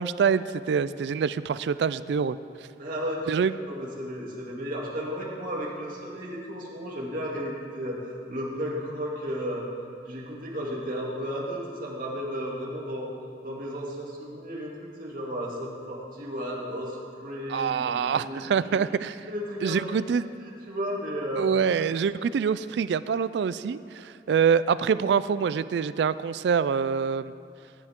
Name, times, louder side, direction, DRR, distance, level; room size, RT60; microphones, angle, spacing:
voice 1, 0.0-2.4 3.3-3.5 17.5-19.3 19.6-20.3 21.4-27.3, right 6 dB, 70° right, 15 dB, 0.3 m, -25 dB
voice 2, 2.8-8.0 8.3-9.7 10.0-13.1 13.4-18.6 19.3-19.9 20.7-21.5, equal, 50° right, -4 dB, 2.7 m, -34 dB
18.0 x 10.5 x 3.7 m, 2.4 s
head